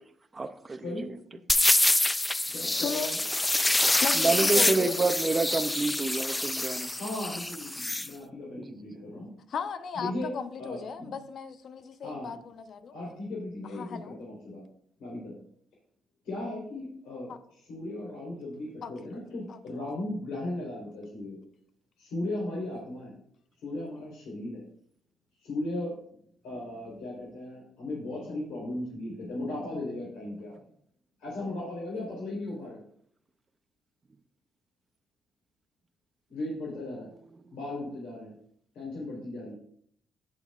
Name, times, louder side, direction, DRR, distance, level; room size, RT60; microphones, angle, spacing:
voice 1, 0.3-0.8 4.1-6.9 8.6-8.7, right 3 dB, 30° right, 6 dB, 0.6 m, -28 dB
sound 1, 1.5-8.1, left 2 dB, 15° left, 0.4 m, -26 dB
voice 2, 2.5-3.2 4.5-4.7 7.0-9.3 9.9-10.3 10.6-11.1 12.0-12.4 12.9-14.6 15.0-15.3 16.2-21.4 22.0-23.1 23.6-24.6 25.4-25.9 26.4-30.6 31.2-32.8 36.3-37.1 37.5-38.3 38.7-39.5, left 1 dB, 85° left, -5 dB, 3.7 m, -36 dB
voice 3, 4.0-5.0 9.5-12.9 13.7-14.2 17.3-17.4 18.8-18.9 19.5-19.6, left 6 dB, 60° left, 9 dB, 0.8 m, -36 dB
17.5 x 5.9 x 2.4 m, 0.65 s
cardioid pair, 90°, 0 cm